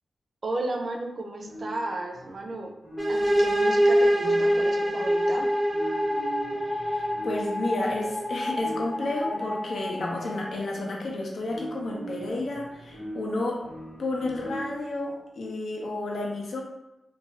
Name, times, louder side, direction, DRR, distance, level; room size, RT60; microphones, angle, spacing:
voice 1, 0.4-2.7 3.1-5.5, right 2 dB, 50° right, 2 dB, 0.5 m, -34 dB
sound 1, 1.4-15.0, right 1 dB, 90° left, 1.1 m, -41 dB
sound 2, 3.0-10.6, equal, ahead, 0.6 m, -25 dB
voice 2, 6.7-13.6 14.0-16.6, left 2 dB, 75° left, -1 dB, 0.6 m, -31 dB
2.5 x 2.3 x 3.0 m, 0.94 s
wide cardioid pair, 90°, 0 cm